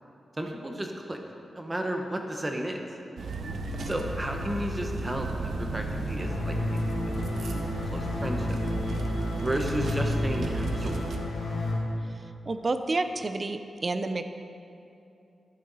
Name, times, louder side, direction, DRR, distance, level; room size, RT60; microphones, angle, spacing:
voice 1, 0.4-1.2 1.5-2.8 3.8-8.6 9.4-11.0, right 1 dB, 15° right, 3 dB, 1.1 m, -33 dB
sound 1, 3.2-11.2, right 2 dB, 70° right, 0.8 m, -33 dB
sound 2, 6.2-11.8, left 2 dB, 80° left, 1.6 m, -32 dB
voice 2, 12.5-14.3, right 3 dB, 35° right, 9 dB, 0.6 m, -29 dB
11.5 x 9.8 x 4.1 m, 2.7 s
wide cardioid pair, 125°, 0 cm